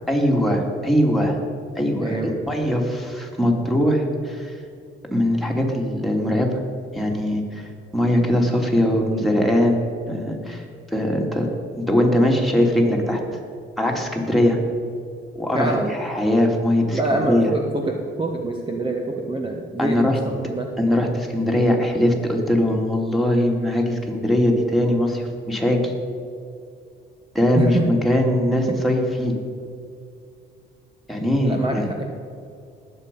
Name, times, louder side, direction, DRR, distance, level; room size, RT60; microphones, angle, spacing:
voice 1, 0.1-1.4 1.7-4.6 5.1-6.6 6.9-11.5 11.8-13.2 13.8-14.6 15.3-17.5 19.8-20.2 20.8-25.9 27.3-29.4 31.1-31.8, left 1 dB, ahead, -1 dB, 2.9 m, -21 dB
voice 2, 15.5-15.9 16.9-20.7 27.6-27.9 28.7-28.8 31.2-32.0, right 2 dB, 25° right, 1 dB, 1.4 m, -25 dB
19.5 x 8.1 x 5.5 m, 2.4 s
cardioid pair, 90°, 20 cm